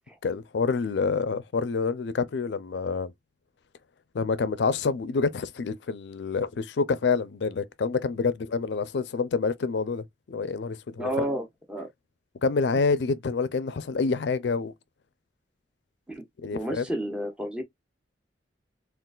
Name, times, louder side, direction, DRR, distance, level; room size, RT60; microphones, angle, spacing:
voice 1, 0.2-3.1 4.1-11.1 12.4-14.7 16.4-16.8, left 4 dB, 70° left, 0.4 m, -27 dB
voice 2, 11.0-11.9 16.1-17.6, right 1 dB, 5° right, 0.8 m, -31 dB
3.8 x 2.4 x 2.3 m
head